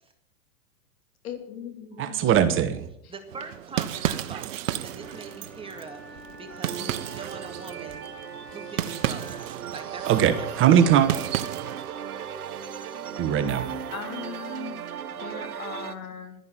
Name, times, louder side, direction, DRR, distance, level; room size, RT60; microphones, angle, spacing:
voice 1, 1.2-2.5 3.0-3.1 6.8-7.1 13.9-14.8 15.1-16.4, left 7 dB, 70° left, 5 dB, 3.6 m, -39 dB
voice 2, 2.0-2.9 10.1-11.1 13.2-13.7, right 9 dB, 30° right, 10 dB, 1.3 m, -20 dB
voice 3, 3.1-8.1 8.5-9.4 9.7-10.1 10.4-11.2, right 4 dB, 10° right, 4 dB, 2.0 m, -42 dB
sound 1, 3.3-11.9, right 12 dB, 60° right, 1.2 m, -33 dB
Wind instrument woodwind instrument, 4.9-9.8, left 2 dB, 5° left, 4.0 m, -48 dB
sound 2, 6.5-15.9, right 8 dB, 80° right, 1.4 m, -37 dB
12.0 x 11.0 x 9.0 m, 0.78 s
hypercardioid pair, 120°, 44 cm